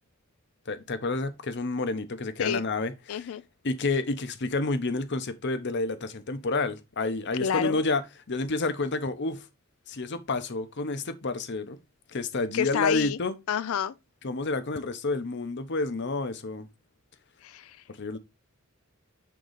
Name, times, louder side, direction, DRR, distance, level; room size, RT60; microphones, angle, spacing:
voice 1, 0.7-3.4 3.6-9.5 9.9-11.8 12.1-13.3 14.2-16.7 17.9-18.2, left 3 dB, 55° left, 0.8 m, -29 dB
voice 2, 3.1-3.4 7.4-7.8 12.5-13.2 13.5-13.9 17.4-17.7, left 8 dB, 75° left, 0.4 m, -28 dB
6.7 x 3.8 x 3.9 m
head